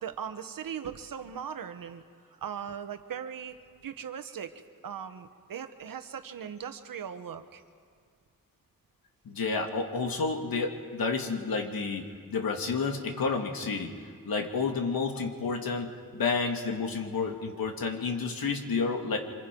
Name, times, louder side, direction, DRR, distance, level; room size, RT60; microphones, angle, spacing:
voice 1, 0.0-2.0 2.4-3.6 3.8-4.5 4.8-7.6, right 8 dB, 70° right, 9 dB, 1.3 m, -39 dB
voice 2, 9.2-13.9 14.3-19.2, left 4 dB, 90° left, 3 dB, 2.2 m, -30 dB
28.5 x 25.5 x 5.3 m, 2.1 s
wide cardioid pair, 150°, 35 cm